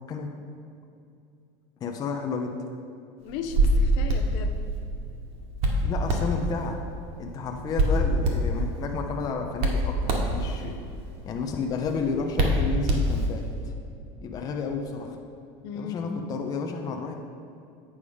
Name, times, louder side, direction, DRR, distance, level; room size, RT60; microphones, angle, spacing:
voice 1, 1.8-2.6 5.8-6.8 7.2-10.8 11.2-13.7 14.2-15.2 15.7-17.1, left 5 dB, 25° left, 3 dB, 0.5 m, -31 dB
voice 2, 3.2-4.6 15.6-16.2, left 6 dB, 60° left, 6 dB, 0.7 m, -36 dB
Hands, 3.3-13.5, right 1 dB, 45° right, 1.2 m, -26 dB
8.5 x 4.9 x 5.3 m, 2.6 s
cardioid pair, 160°, 15 cm